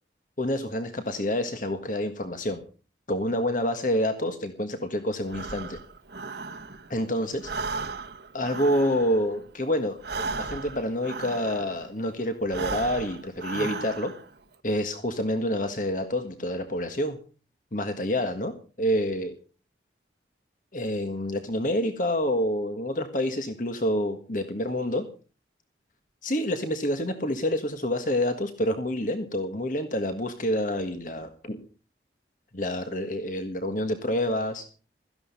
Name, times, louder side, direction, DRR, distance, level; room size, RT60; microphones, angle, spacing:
voice 1, 0.4-2.6 3.1-5.8 6.9-7.5 8.3-14.1 14.6-17.2 17.7-19.3 20.7-25.1 26.2-31.6 32.5-34.7, left 1 dB, 45° left, 8 dB, 1.6 m, -28 dB
Breathing, 5.3-7.0 7.3-11.9 12.4-14.3, right 4 dB, 65° right, 1.3 m, -36 dB
16.5 x 14.0 x 5.5 m, 0.38 s
head